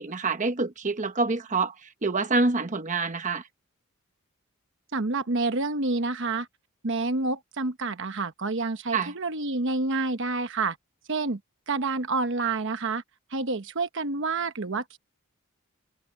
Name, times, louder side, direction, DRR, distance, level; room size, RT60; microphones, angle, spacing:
voice 1, 0.0-1.7 2.0-3.4 8.9-9.1, right 3 dB, 35° right, 1.0 m, -26 dB
voice 2, 4.9-6.5 6.8-10.8 11.1-11.4 11.7-13.0 13.3-15.0, right 3 dB, 60° right, 1.1 m, -28 dB
head